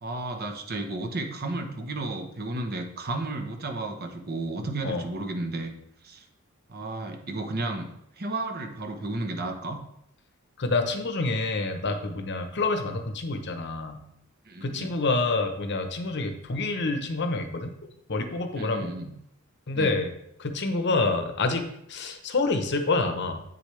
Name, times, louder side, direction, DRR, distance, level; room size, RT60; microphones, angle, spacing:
voice 1, 0.0-5.7 6.0-6.2 6.7-7.9 8.2-9.8 14.5-15.0 18.5-19.1 19.7-20.0, right 2 dB, 45° right, 5 dB, 1.0 m, -33 dB
voice 2, 10.6-14.0 14.6-18.9 19.7-20.1 20.4-23.4, left 3 dB, 55° left, 6 dB, 0.9 m, -27 dB
8.4 x 6.7 x 3.3 m, 0.75 s
head